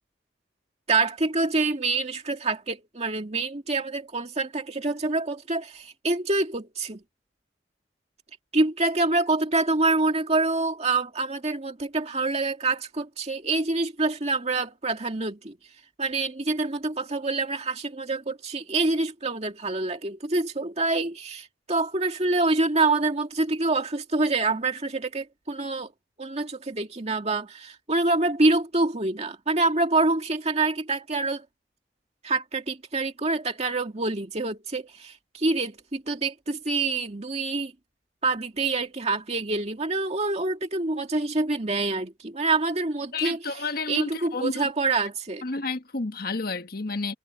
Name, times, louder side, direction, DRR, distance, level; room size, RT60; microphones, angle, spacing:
voice 1, 0.9-7.0 8.5-15.6 16.0-25.9 26.2-31.5 32.2-37.7 38.2-45.4, right 3 dB, 35° right, 2.1 m, -26 dB
voice 2, 43.1-44.7 45.4-47.1, left 3 dB, 60° left, 1.4 m, -31 dB
head